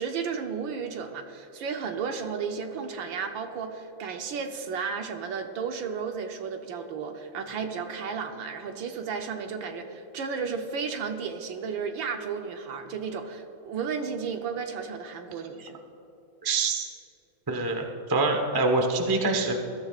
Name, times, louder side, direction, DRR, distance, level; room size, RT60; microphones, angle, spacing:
voice 1, 0.0-15.8, right 6 dB, 65° right, 5 dB, 1.5 m, -33 dB
voice 2, 16.4-16.9 17.5-19.6, right 3 dB, 25° right, 3 dB, 0.4 m, -25 dB
20.5 x 13.0 x 2.4 m, 2.8 s
omnidirectional pair, 2.4 m